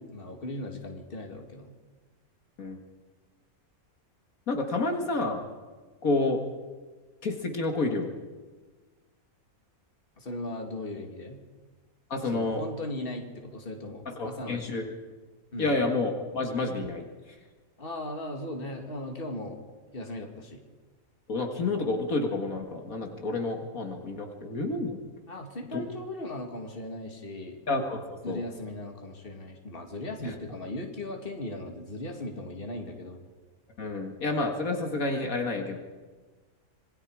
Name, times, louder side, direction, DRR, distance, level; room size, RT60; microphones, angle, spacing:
voice 1, 0.0-1.8 10.2-11.4 12.3-14.8 15.5-15.7 17.8-19.6 19.9-20.6 25.3-27.6 28.2-33.2, left 1 dB, 40° left, 3 dB, 2.5 m, -38 dB
voice 2, 4.5-5.4 6.0-6.4 7.2-8.1 12.1-12.6 14.1-14.9 15.6-17.4 21.3-25.0 25.7-25.9 27.7-28.4 30.2-30.4 33.8-35.8, left 2 dB, 70° left, 3 dB, 2.3 m, -29 dB
26.5 x 21.0 x 4.9 m, 1.3 s
omnidirectional pair, 1.5 m